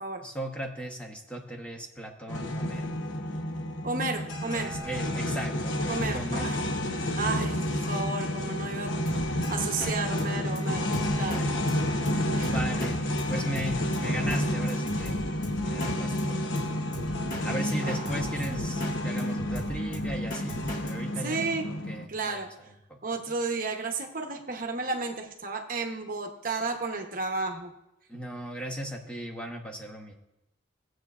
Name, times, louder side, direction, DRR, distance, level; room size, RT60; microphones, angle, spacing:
voice 1, 0.2-2.9 4.5-6.5 7.1-7.2 11.3-13.0 13.3-15.1 15.6-16.7 17.4-22.4 22.9-23.0 28.1-30.1, right 1 dB, 5° left, 1 dB, 0.9 m, -37 dB
sound 1, 2.3-22.1, left 1 dB, 75° left, 0.9 m, -30 dB
voice 2, 3.8-4.7 5.9-6.6 6.9-8.9 9.3-11.4 12.3-12.5 17.8-18.6 21.2-21.7 22.1-22.5 23.0-27.7, right 3 dB, 45° right, 3 dB, 0.9 m, -33 dB
Drum kit, 9.1-9.5 9.8-9.9 10.2-10.3 10.6-10.7 10.9-11.4 11.7-11.8 12.1-12.2 12.4-12.9 13.2-13.3 13.6-14.4 14.7-15.9 16.2-16.3 16.6-16.7 16.9-17.4 17.7-18.9 19.2-20.9, left 1 dB, 40° left, 1.7 m, -38 dB
17.5 x 7.8 x 2.4 m, 0.87 s
head